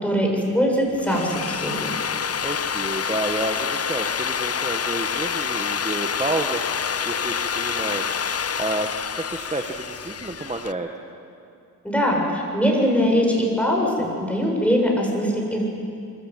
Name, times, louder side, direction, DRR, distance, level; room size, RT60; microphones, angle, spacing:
voice 1, 0.0-1.9 11.8-15.6, equal, 5° left, -1 dB, 7.5 m, -22 dB
Drill, 0.9-10.7, left 7 dB, 40° left, 0.7 m, -27 dB
voice 2, 2.4-6.6 7.0-8.0 8.6-10.9, right 2 dB, 15° right, 4 dB, 1.7 m, -29 dB
24.0 x 14.5 x 9.3 m, 2.4 s
cardioid pair, 50°, 39 cm